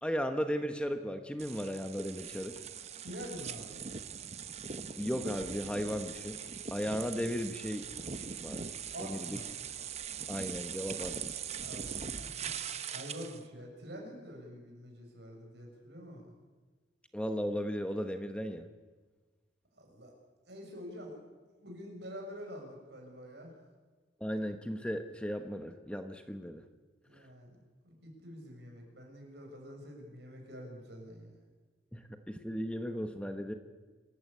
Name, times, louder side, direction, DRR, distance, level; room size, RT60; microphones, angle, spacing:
voice 1, 0.0-2.5 5.0-6.4 6.7-7.9 8.4-8.6 9.1-9.3 10.3-11.1 17.1-18.7 24.2-26.6 31.9-33.5, equal, 5° left, 7 dB, 1.1 m, -35 dB
sound 1, 1.4-13.4, right 7 dB, 35° right, 1.0 m, -41 dB
voice 2, 3.0-3.8 8.9-9.5 11.6-16.3 19.7-20.1 20.5-21.2 21.6-23.6 27.1-31.4, equal, 65° right, 1 dB, 7.0 m, -47 dB
27.0 x 14.5 x 8.5 m, 1.3 s
head